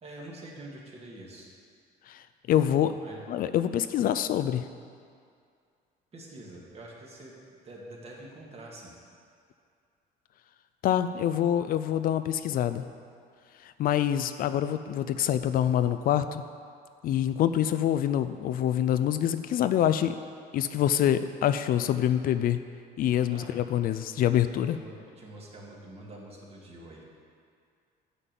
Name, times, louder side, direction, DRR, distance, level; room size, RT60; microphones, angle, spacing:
voice 1, 0.0-1.5 2.9-3.2 6.1-9.0 23.3-23.5 24.4-27.0, right 1 dB, 35° right, -3 dB, 2.0 m, -46 dB
voice 2, 2.1-2.9 3.3-4.6 10.8-12.8 13.6-16.4 17.0-20.2 20.5-22.6 23.0-24.8, left 10 dB, 60° left, 11 dB, 0.4 m, -26 dB
8.3 x 5.3 x 7.5 m, 2.3 s
cardioid pair, 110°, 17 cm